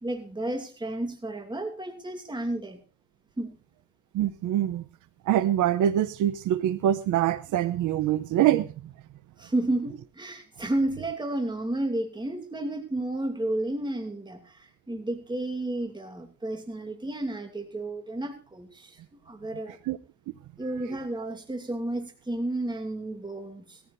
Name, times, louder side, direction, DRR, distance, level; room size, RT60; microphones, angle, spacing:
voice 1, 0.0-2.8 3.4-3.5 9.4-19.0 19.3-19.8 20.6-23.8, right 1 dB, 15° right, 5 dB, 2.6 m, -32 dB
voice 2, 4.1-4.8 5.2-8.7 19.8-20.0, right 11 dB, 85° right, 14 dB, 0.8 m, -24 dB
20.5 x 15.0 x 2.6 m, 0.33 s
cardioid pair, 90°, 30 cm